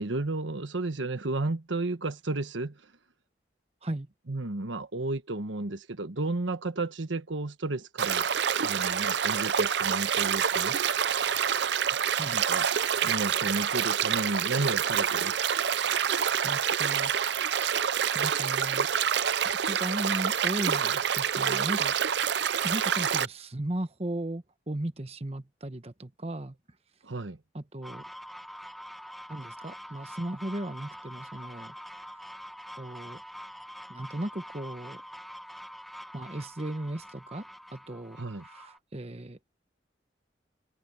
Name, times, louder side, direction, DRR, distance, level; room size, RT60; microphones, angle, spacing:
voice 1, 0.0-2.8 4.3-8.3 8.6-10.8 12.3-12.7 13.0-15.4 27.0-27.4 38.2-38.4, right 2 dB, 90° right, 1.4 m, -32 dB
sound 1, 8.0-23.2, right 8 dB, 65° right, 0.6 m, -27 dB
voice 2, 16.0-17.1 17.9-18.9 19.4-21.9 22.3-26.5 27.5-28.0 29.3-32.3 32.8-33.2 33.9-35.0 36.1-37.4 37.7-39.4, right 1 dB, 35° right, 1.1 m, -36 dB
sound 2, 27.8-38.8, equal, ahead, 1.6 m, -45 dB
head